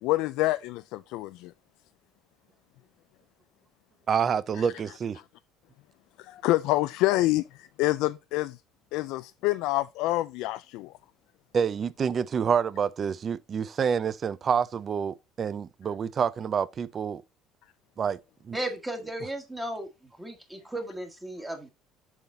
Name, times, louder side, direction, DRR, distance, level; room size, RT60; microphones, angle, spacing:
voice 1, 0.0-1.5 4.6-4.7 6.2-8.6 8.9-10.9, left 18 dB, 75° left, 0.3 m, -27 dB
voice 2, 4.1-5.2 11.5-17.2 18.0-18.2 18.4-18.6, right 7 dB, 30° right, 0.5 m, -27 dB
voice 3, 18.5-19.9 20.2-21.7, right 1 dB, 10° right, 1.6 m, -35 dB
7.1 x 3.9 x 5.4 m
cardioid pair, 145°, 0 cm